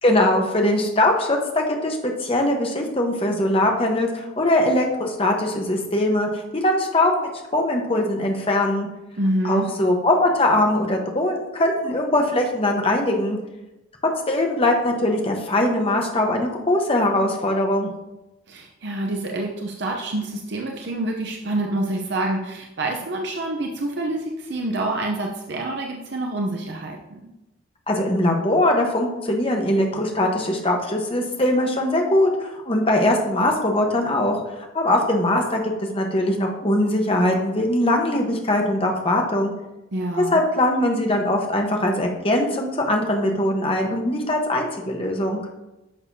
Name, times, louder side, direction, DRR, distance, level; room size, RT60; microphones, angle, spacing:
voice 1, 0.0-8.9 9.4-13.4 14.3-17.9 27.9-34.4 34.7-39.5 40.2-45.4, left 1 dB, 25° left, 1 dB, 1.1 m, -21 dB
voice 2, 9.2-9.7 18.5-27.3 39.9-40.4, right 1 dB, 55° right, 1 dB, 0.7 m, -27 dB
10.5 x 6.6 x 2.7 m, 1.0 s
head